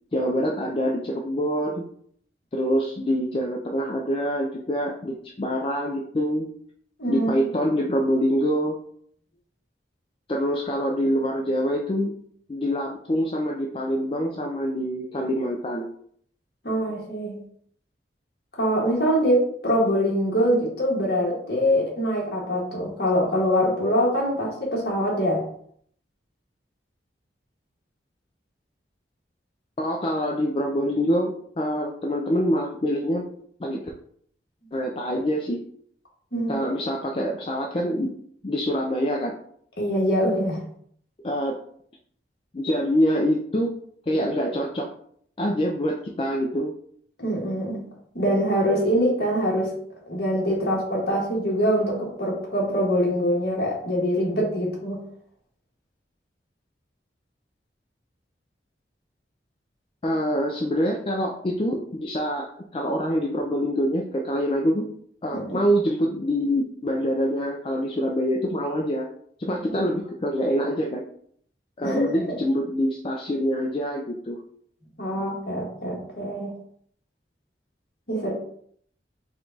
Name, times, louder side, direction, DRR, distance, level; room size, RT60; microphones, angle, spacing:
voice 1, 0.1-1.8 2.5-6.5 7.1-8.8 10.3-12.1 12.5-15.9 29.8-33.2 33.6-33.8 34.7-35.6 36.5-38.1 38.4-39.4 41.2-41.6 42.5-43.7 44.1-44.9 45.4-46.7 60.0-64.9 65.2-69.1 69.4-71.0 71.8-74.4, equal, 30° left, 0 dB, 0.4 m, -25 dB
voice 2, 7.0-7.5 16.6-17.4 18.6-25.4 36.3-36.5 39.8-40.6 47.2-47.8 48.1-49.7 50.1-55.0 65.3-65.6 69.7-69.8 71.8-72.4 75.0-76.5 78.1-78.3, equal, 60° left, -2 dB, 1.4 m, -24 dB
4.9 x 2.4 x 3.9 m, 0.63 s
head